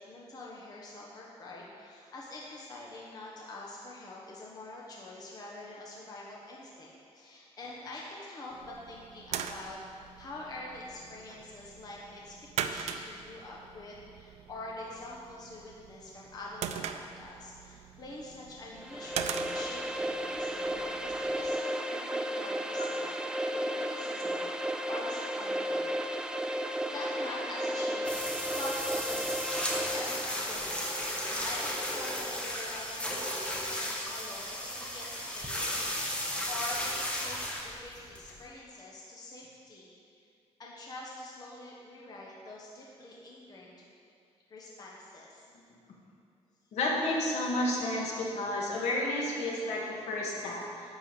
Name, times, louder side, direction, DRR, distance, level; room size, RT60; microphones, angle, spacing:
voice 1, 0.1-20.7 21.0-25.9 26.8-29.4 29.7-37.4 37.6-39.9 40.1-40.2 40.6-43.9 44.5-45.4, left 2 dB, 35° left, -4 dB, 1.2 m, -45 dB
sound 1, 8.5-21.6, right 8 dB, 70° right, 0.5 m, -42 dB
sound 2, 18.8-30.4, equal, 5° right, 0.4 m, -33 dB
sound 3, 28.0-38.4, equal, 10° left, 1.2 m, -35 dB
voice 2, 46.7-50.6, left 1 dB, 70° left, -3 dB, 2.0 m, -31 dB
11.0 x 4.7 x 7.7 m, 2.5 s
cardioid pair, 155°, 12 cm